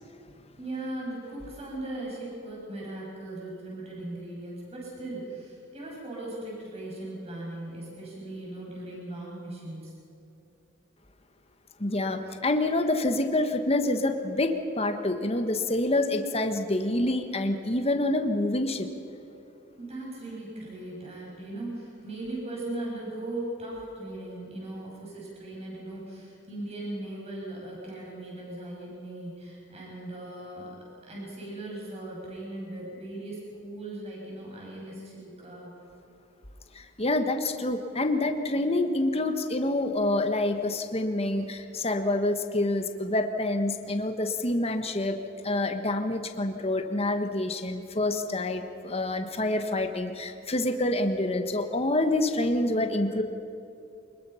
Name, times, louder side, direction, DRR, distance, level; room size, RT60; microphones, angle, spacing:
voice 1, 0.6-9.9 19.8-30.7 31.1-35.7, right 1 dB, 35° right, -4 dB, 7.0 m, -38 dB
voice 2, 11.8-18.9 36.7-45.2 45.4-53.2, left 2 dB, 30° left, 6 dB, 1.4 m, -27 dB
24.5 x 21.5 x 5.8 m, 2.8 s
head